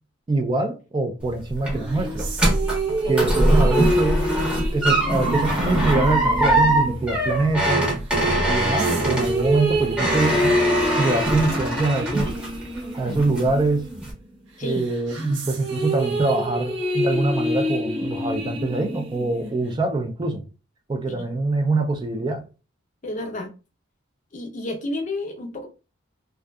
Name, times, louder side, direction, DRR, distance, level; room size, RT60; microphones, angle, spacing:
voice 1, 0.3-2.3 3.0-4.3 4.7-7.9 8.5-10.5 11.0-12.3 12.9-13.9 14.6-20.4 20.9-22.4, right 2 dB, 25° right, 0.3 m, -24 dB
sound 1, 1.2-12.8 13.1-13.6 14.0-14.1, right 1 dB, 5° right, 0.7 m, -22 dB
sound 2, 1.7-7.7 8.2-14.2 14.6-19.7, equal, 65° right, 0.8 m, -27 dB
voice 2, 3.0-3.4 14.6-14.8 21.1-21.3 23.0-23.5 24.3-25.7, left 2 dB, 40° left, 0.5 m, -31 dB
2.6 x 2.2 x 2.2 m
head